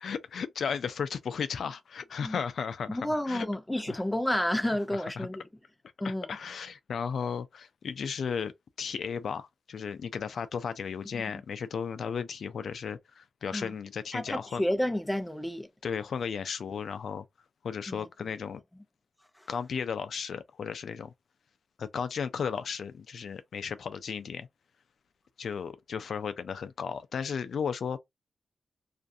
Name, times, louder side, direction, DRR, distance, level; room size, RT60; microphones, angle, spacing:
voice 1, 0.0-3.5 3.9-4.0 4.9-5.3 6.0-8.5 8.8-14.6 15.8-17.3 17.6-18.6 19.5-21.1 21.8-24.5 25.4-28.0, left 6 dB, 75° left, 0.3 m, -35 dB
voice 2, 2.9-5.4 6.0-6.4 11.1-11.2 13.5-13.7 14.1-15.7 17.9-18.3, left 1 dB, 5° left, 0.4 m, -31 dB
2.5 x 2.3 x 2.6 m
wide cardioid pair, 105°, 0 cm